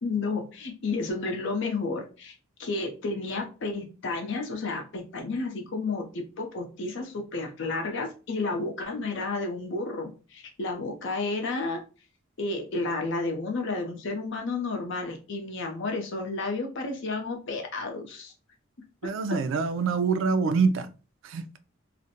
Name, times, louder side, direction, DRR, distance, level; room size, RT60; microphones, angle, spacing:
voice 1, 0.0-2.3 2.6-11.8 12.4-18.3, left 3 dB, 65° left, 0.6 m, -31 dB
voice 2, 19.0-20.9 21.2-21.4, right 5 dB, 65° right, 0.3 m, -25 dB
2.4 x 2.1 x 2.8 m
head